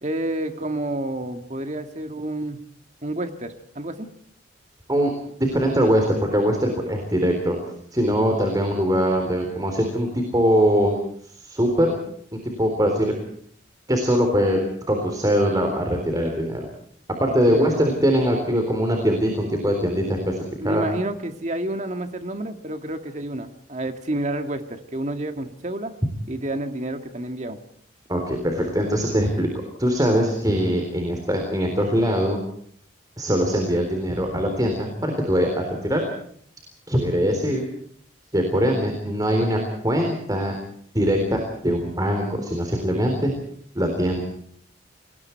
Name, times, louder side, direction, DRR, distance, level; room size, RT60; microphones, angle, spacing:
voice 1, 0.0-2.6 3.0-4.1 17.4-17.9 20.6-25.9 26.3-27.6, right 1 dB, 35° right, 6 dB, 2.0 m, -29 dB
voice 2, 5.4-7.6 7.9-11.0 11.4-11.9 12.3-13.1 13.9-14.6 14.9-16.7 17.2-20.9 28.1-29.5 29.8-32.4 33.2-36.0 36.9-37.7 38.3-40.6 40.9-43.3 43.8-44.2, equal, 20° right, 3 dB, 3.8 m, -22 dB
29.0 x 21.0 x 4.7 m, 0.63 s
head